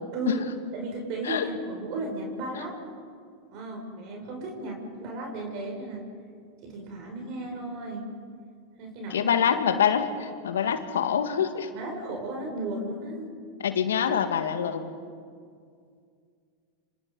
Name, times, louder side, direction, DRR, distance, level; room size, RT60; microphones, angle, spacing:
voice 1, 0.1-0.5 0.7-2.7 3.5-6.1 6.6-8.1 8.8-9.3 11.7-13.4, right 2 dB, 55° right, 1 dB, 6.0 m, -34 dB
voice 2, 9.1-11.7 13.6-14.9, left 8 dB, 80° left, 8 dB, 1.9 m, -25 dB
27.0 x 26.0 x 5.5 m, 2.2 s
hypercardioid pair, 95°, 0 cm